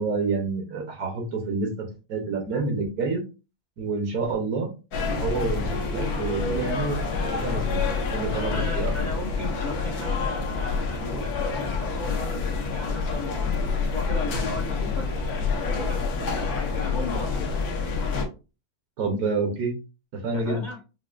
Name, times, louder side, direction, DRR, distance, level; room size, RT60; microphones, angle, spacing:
voice 1, 0.0-3.2 3.8-4.7 5.1-8.9 19.0-19.7 20.2-20.6, right 4 dB, 80° right, 3 dB, 1.4 m, -28 dB
sound 1, 4.9-18.2, left 4 dB, 80° left, 1.3 m, -27 dB
voice 2, 8.5-13.3 13.8-15.1 15.6-17.3 20.3-20.8, left 2 dB, 55° left, -1 dB, 0.5 m, -36 dB
5.6 x 2.1 x 2.4 m, 0.31 s
omnidirectional pair, 1.6 m